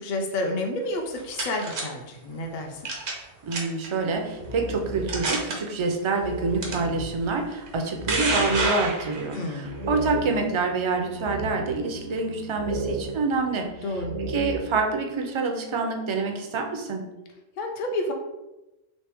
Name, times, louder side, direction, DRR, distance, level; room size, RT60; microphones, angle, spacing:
voice 1, 0.0-2.9 9.3-9.8 13.8-14.2 17.6-18.1, left 1 dB, 60° left, 2 dB, 0.6 m, -30 dB
sound 1, 0.9-1.8 2.9-3.2 3.5-3.9 4.5-4.6 5.1-5.5 6.6-6.7 7.7-9.4, right 3 dB, 85° right, 1.2 m, -27 dB
voice 2, 3.4-13.8 14.2-17.1, right 3 dB, 50° right, 3 dB, 0.3 m, -27 dB
sound 2, 4.4-5.5 5.9-6.0 6.2-10.7 11.2-12.0 12.5-14.8, right 2 dB, 65° right, 0.8 m, -34 dB
Bowed string instrument, 9.6-14.4, right 1 dB, 90° left, 1.0 m, -46 dB
3.2 x 3.1 x 3.4 m, 0.99 s
omnidirectional pair, 1.1 m